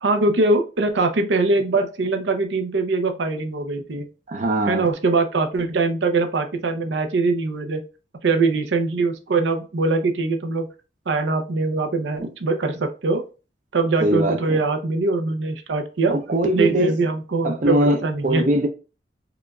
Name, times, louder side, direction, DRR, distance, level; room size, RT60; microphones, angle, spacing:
voice 1, 0.0-4.1 4.7-7.8 8.2-10.7 11.1-13.2 13.7-16.2 16.6-18.4, right 3 dB, 90° right, 0.6 m, -22 dB
voice 2, 4.3-4.9 14.0-14.6 16.1-17.0 17.4-18.7, right 1 dB, 45° right, 0.5 m, -21 dB
4.9 x 2.4 x 2.2 m
head